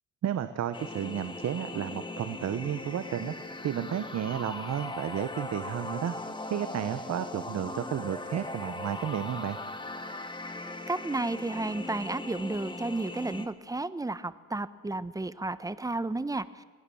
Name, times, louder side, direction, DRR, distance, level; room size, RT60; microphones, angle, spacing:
voice 1, 0.2-3.3 3.6-6.1 6.5-9.6 10.0-10.2, right 10 dB, 60° right, 11 dB, 1.1 m, -32 dB
sound 1, 0.7-13.5, left 2 dB, 15° left, 2.0 m, -39 dB
voice 2, 10.9-16.6, right 2 dB, 10° right, 14 dB, 1.0 m, -32 dB
27.0 x 18.5 x 7.1 m, 1.3 s
cardioid pair, 90°, 30 cm